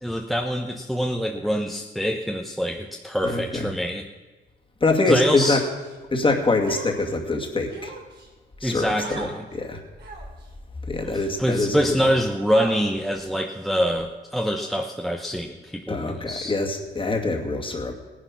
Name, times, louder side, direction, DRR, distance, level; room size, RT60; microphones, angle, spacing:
voice 1, 0.0-4.0 5.1-5.6 8.6-9.4 11.0-16.5, equal, ahead, 2 dB, 0.9 m, -25 dB
voice 2, 3.2-3.7 4.8-5.6 6.1-7.9 8.6-8.9 9.5-9.8 10.9-12.1 15.9-17.9, left 3 dB, 25° left, 2 dB, 2.3 m, -24 dB
Human voice, 5.3-6.0 6.7-7.1 7.7-8.3 9.0-9.4 10.0-10.4 11.1-11.2 12.5-13.1, right 4 dB, 55° right, 2.8 m, -38 dB
16.5 x 10.0 x 5.9 m, 1.3 s
cardioid pair, 90°, 20 cm